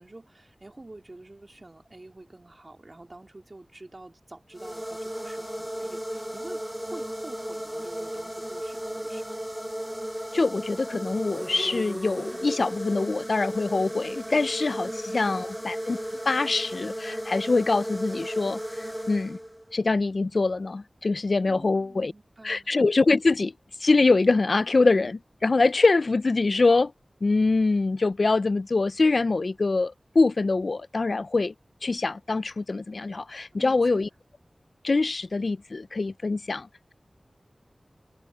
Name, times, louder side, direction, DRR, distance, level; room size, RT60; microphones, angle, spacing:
voice 1, 0.0-9.3 14.8-15.4 21.4-22.7 33.5-34.1, right 2 dB, 40° right, 3.2 m, -47 dB
sound 1, 4.5-19.7, equal, 10° right, 0.4 m, -35 dB
voice 2, 10.3-16.0 16.3-19.4 19.7-22.1 22.4-23.5 23.8-26.9 27.2-31.5 31.8-34.1 34.8-36.7, left 3 dB, 65° left, 0.5 m, -24 dB
wide cardioid pair, 60°, 0 cm